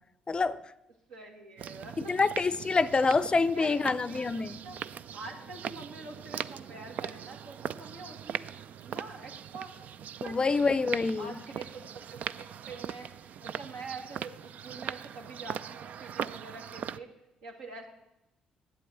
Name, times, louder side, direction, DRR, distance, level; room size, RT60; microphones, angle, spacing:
voice 1, 0.3-0.6 2.1-4.6 10.2-11.4, left 4 dB, 30° left, 0.5 m, -26 dB
voice 2, 1.1-2.5 3.5-4.8 5.1-9.7 10.2-10.8 11.2-13.1 13.4-17.1 17.4-17.9, right 3 dB, 80° right, 1.8 m, -45 dB
sound 1, 1.6-17.0, right 9 dB, 60° right, 0.3 m, -40 dB
8.5 x 8.2 x 8.5 m
hypercardioid pair, 50°, 3 cm